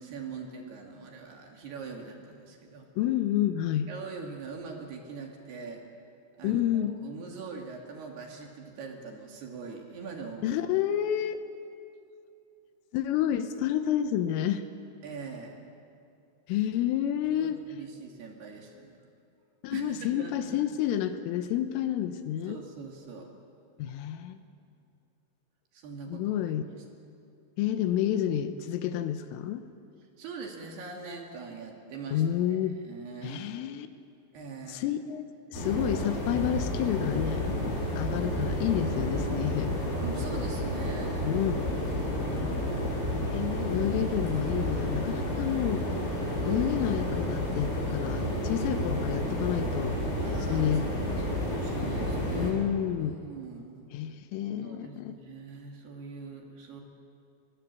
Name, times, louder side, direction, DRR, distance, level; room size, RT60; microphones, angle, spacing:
voice 1, 0.0-2.9 3.9-5.8 6.4-10.6 15.0-15.6 17.3-19.0 19.7-20.6 22.5-23.3 25.7-26.4 26.7-26.8 30.2-32.2 32.9-33.4 34.3-34.9 40.0-41.3 41.9-42.8 50.2-50.7 51.2-52.6 53.0-53.9 54.6-56.8, right 5 dB, 55° right, 1 dB, 4.0 m, -42 dB
voice 2, 3.0-3.9 6.4-6.9 10.4-11.4 12.9-14.7 16.5-17.6 19.6-22.6 23.8-24.4 26.1-26.6 27.6-29.7 32.1-32.8 33.2-33.9 34.7-39.8 41.2-41.7 43.3-45.9 46.5-50.0 50.5-51.2 52.3-53.2 53.9-55.2, left 11 dB, 85° left, 9 dB, 3.5 m, -29 dB
sound 1, 35.5-52.5, equal, 50° left, 9.6 m, -30 dB
23.0 x 22.0 x 8.4 m, 2.7 s
omnidirectional pair, 5.9 m